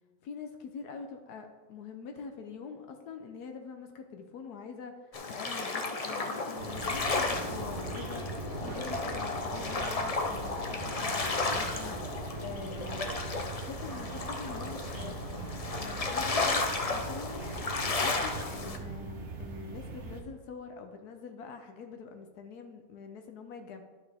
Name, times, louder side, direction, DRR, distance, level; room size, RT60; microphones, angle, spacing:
voice 1, 0.2-12.0 12.4-13.2 13.6-15.4 15.8-17.4 17.9-23.8, left 5 dB, 80° left, 5 dB, 1.2 m, -45 dB
sound 1, 5.1-18.8, left 3 dB, 60° left, 0.3 m, -33 dB
sound 2, 6.6-20.2, right 3 dB, 50° right, 1.1 m, -41 dB
11.0 x 5.9 x 3.4 m, 1.3 s
omnidirectional pair, 1.7 m